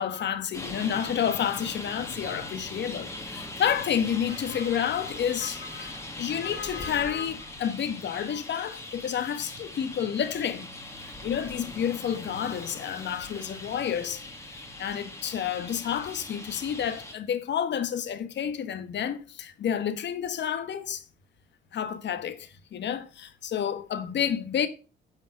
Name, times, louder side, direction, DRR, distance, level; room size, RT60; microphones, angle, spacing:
voice 1, 0.0-10.7 11.2-14.2 14.8-21.0 21.7-24.7, left 8 dB, 65° left, 1.3 m, -30 dB
Traffic noise roadway noise, 0.5-17.1, left 1 dB, 15° left, 2.3 m, -40 dB
9.9 x 5.2 x 6.3 m
cardioid pair, 90°, 20 cm